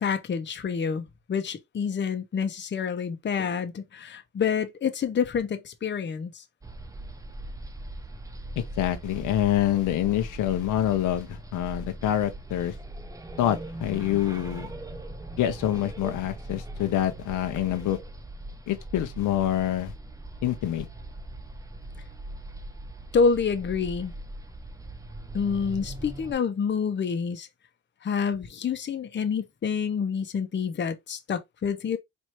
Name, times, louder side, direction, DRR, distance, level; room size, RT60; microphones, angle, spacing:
voice 1, 0.0-6.4 23.1-24.1 25.3-27.5 28.0-32.0, left 6 dB, 40° left, 0.8 m, -28 dB
sound 1, 6.6-26.3, right 1 dB, 10° right, 0.5 m, -40 dB
voice 2, 8.6-12.7 13.4-14.7 15.4-18.0 18.7-19.9 20.4-20.9, left 12 dB, 80° left, 0.7 m, -26 dB
4.4 x 2.6 x 3.0 m
cardioid pair, 90°, 30 cm